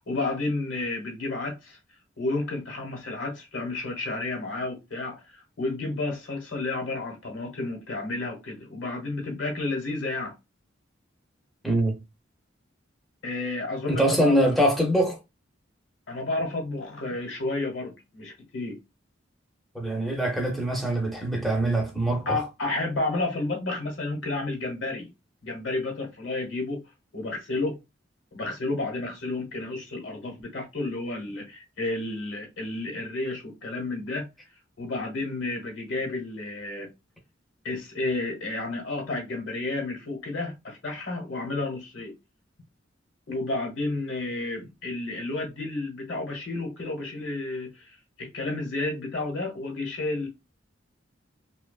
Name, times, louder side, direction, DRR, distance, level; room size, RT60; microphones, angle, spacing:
voice 1, 0.0-1.8 2.2-10.3 13.2-14.5 16.1-18.8 22.3-25.1 25.4-26.8 27.1-27.8 28.3-34.3 34.8-36.9 37.6-42.1 43.3-50.3, left 2 dB, 75° left, 1.0 m, -31 dB
voice 2, 11.6-12.0 13.9-15.2 19.7-22.4, right 1 dB, ahead, 0.5 m, -23 dB
2.7 x 2.2 x 2.3 m
head